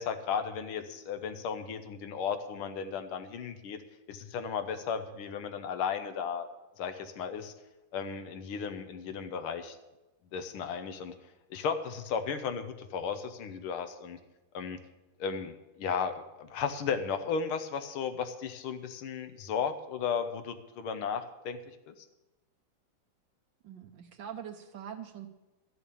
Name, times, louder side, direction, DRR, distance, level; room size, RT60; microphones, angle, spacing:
voice 1, 0.0-3.8 4.1-6.5 6.8-7.5 7.9-9.8 10.3-11.1 11.5-14.2 14.5-14.8 15.2-21.6 21.9-22.0, left 6 dB, 90° left, 9 dB, 1.8 m, -35 dB
voice 2, 23.6-25.3, right 8 dB, 70° right, 6 dB, 1.5 m, -43 dB
12.5 x 7.0 x 8.4 m, 1.0 s
omnidirectional pair, 2.3 m